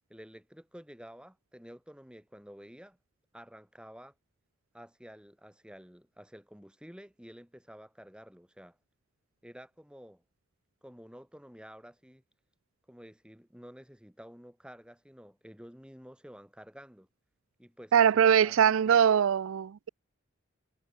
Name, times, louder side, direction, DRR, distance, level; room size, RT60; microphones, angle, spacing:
voice 1, 0.1-3.0 3.3-4.1 4.7-8.8 9.4-10.2 10.8-12.2 12.9-17.1 17.6-18.6 18.9-19.0, equal, 5° right, 3.6 m, -51 dB
voice 2, 17.9-19.9, right 8 dB, 70° right, 0.4 m, -22 dB
head